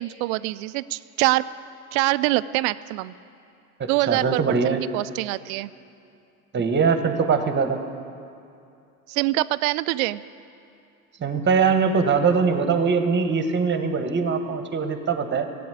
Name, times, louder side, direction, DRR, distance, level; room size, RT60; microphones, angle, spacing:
voice 1, 0.0-1.4 1.9-3.1 3.9-5.7 9.1-10.2, right 18 dB, 65° right, 16 dB, 0.6 m, -24 dB
voice 2, 3.8-4.8 6.5-7.8 11.2-15.5, right 5 dB, 25° right, 7 dB, 1.4 m, -22 dB
15.0 x 8.5 x 8.4 m, 2.6 s
hypercardioid pair, 80°, 44 cm